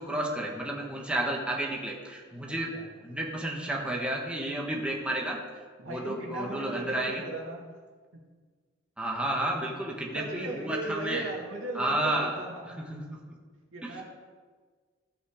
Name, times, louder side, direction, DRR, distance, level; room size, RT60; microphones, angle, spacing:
voice 1, 0.0-2.7 3.0-7.2 9.0-11.3 11.7-12.4 12.8-13.2 13.8-14.0, right 1 dB, 5° right, -1 dB, 1.4 m, -32 dB
voice 2, 2.5-2.8 5.8-7.7 10.1-12.9 13.7-14.0, right 2 dB, 90° right, -2 dB, 2.5 m, -37 dB
16.0 x 5.6 x 5.0 m, 1.5 s
head